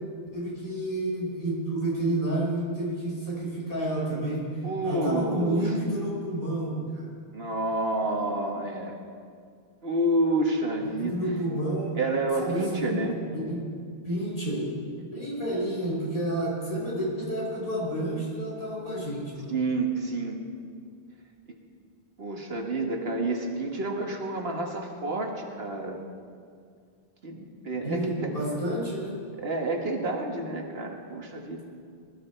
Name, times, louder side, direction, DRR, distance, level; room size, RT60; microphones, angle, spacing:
voice 1, 0.3-7.1 10.8-12.0 12.4-13.0 13.3-13.6 14.0-14.8 15.1-19.5 27.8-29.2, right 1 dB, 55° left, -5 dB, 5.2 m, -30 dB
voice 2, 4.6-5.7 7.3-9.0 9.8-11.2 12.0-13.2 19.5-20.4 22.2-26.0 27.2-28.3 29.4-31.6, right 2 dB, 70° right, 2 dB, 1.8 m, -29 dB
21.0 x 13.5 x 4.5 m, 2.2 s
omnidirectional pair, 1.1 m